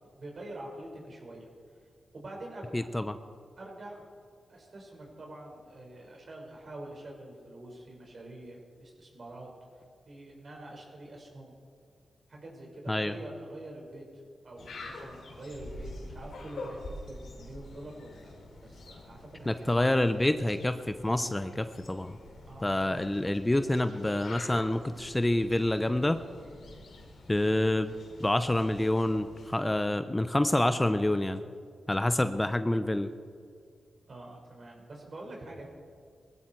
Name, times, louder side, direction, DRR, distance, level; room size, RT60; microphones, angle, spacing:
voice 1, 0.1-1.5 2.1-2.9 3.6-4.0 4.5-9.5 10.1-11.5 12.3-14.0 14.4-18.3 18.6-20.0 22.5-23.1 34.1-35.7, right 1 dB, 55° right, -1 dB, 5.7 m, -45 dB
voice 2, 2.7-3.1 12.9-13.1 19.5-22.2 22.6-26.2 27.3-27.9 28.2-31.4 31.9-33.1, left 1 dB, 20° left, 10 dB, 0.8 m, -27 dB
sound 1, 14.6-29.6, left 2 dB, 80° left, 2.9 m, -47 dB
20.0 x 15.0 x 4.7 m, 2.1 s
cardioid pair, 50°, 0 cm